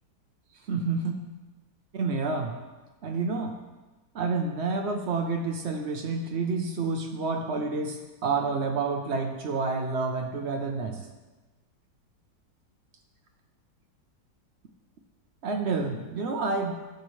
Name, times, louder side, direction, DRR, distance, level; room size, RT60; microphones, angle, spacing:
voice 1, 0.7-1.1 1.9-2.5 3.0-3.5 4.1-11.0 15.4-16.7, right 4 dB, 70° right, 4 dB, 0.6 m, -29 dB
10.5 x 7.4 x 3.1 m, 1.2 s
omnidirectional pair, 2.0 m